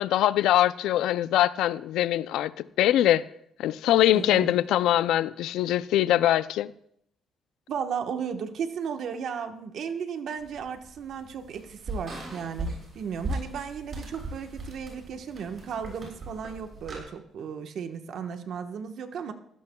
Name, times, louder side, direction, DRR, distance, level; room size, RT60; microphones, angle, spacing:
voice 1, 0.0-3.3 3.6-6.7, left 13 dB, 85° left, 0.4 m, -23 dB
voice 2, 4.1-4.6 7.7-19.3, right 7 dB, 70° right, 1.2 m, -35 dB
sound 1, 10.4-17.0, right 2 dB, 50° right, 7.2 m, -38 dB
19.5 x 16.0 x 2.3 m
cardioid pair, 90°, 0 cm